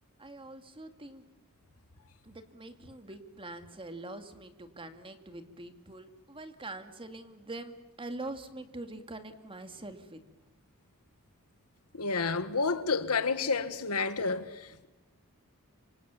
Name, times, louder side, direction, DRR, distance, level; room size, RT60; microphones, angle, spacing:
voice 1, 0.2-1.2 2.2-10.2, right 2 dB, 25° right, 2.2 m, -44 dB
voice 2, 11.9-14.9, left 4 dB, 80° left, 1.7 m, -30 dB
27.5 x 25.5 x 7.2 m
head